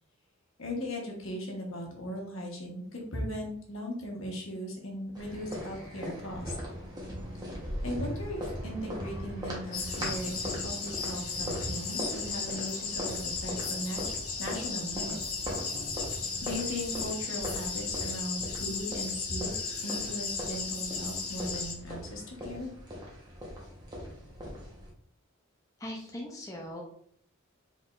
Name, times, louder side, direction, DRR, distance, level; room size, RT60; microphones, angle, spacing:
voice 1, 0.6-6.5 7.8-15.2 16.4-22.7, equal, 70° left, -1 dB, 1.3 m, -38 dB
sound 1, 5.1-24.9, equal, 20° right, 1.1 m, -40 dB
sound 2, 9.7-21.7, left 5 dB, 85° left, 1.3 m, -35 dB
voice 2, 25.8-26.8, left 1 dB, 15° left, -1 dB, 0.5 m, -40 dB
4.9 x 3.6 x 2.5 m, 0.62 s
head